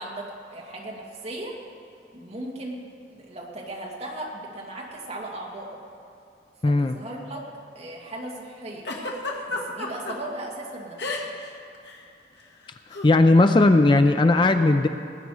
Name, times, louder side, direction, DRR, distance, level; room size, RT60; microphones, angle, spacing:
voice 1, 0.0-1.6 2.1-2.8 3.1-5.8 6.6-7.5 7.8-8.9 9.5-11.0, right 1 dB, 35° right, -2 dB, 2.1 m, -37 dB
voice 2, 6.6-7.0 13.0-14.9, left 2 dB, 25° left, 8 dB, 0.4 m, -17 dB
Giggle, 8.8-10.1 11.0-11.5 11.7-12.0 12.9-13.1, left 3 dB, 70° left, 1.8 m, -31 dB
19.0 x 9.4 x 4.9 m, 2.6 s
head